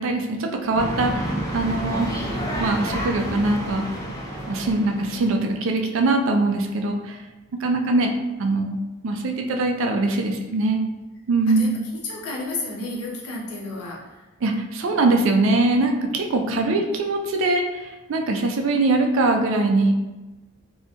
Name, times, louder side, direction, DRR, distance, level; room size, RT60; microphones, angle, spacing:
voice 1, 0.0-2.1 2.6-3.9 4.5-7.2 7.6-8.1 8.4-10.8 11.3-11.7 14.4-19.9, right 2 dB, 60° right, 3 dB, 0.3 m, -22 dB
sound 1, 0.7-5.6, right 1 dB, 15° left, 0.3 m, -29 dB
voice 2, 11.5-14.3 16.4-16.8, left 2 dB, 85° left, -3 dB, 0.7 m, -32 dB
2.7 x 2.2 x 2.7 m, 1.1 s
head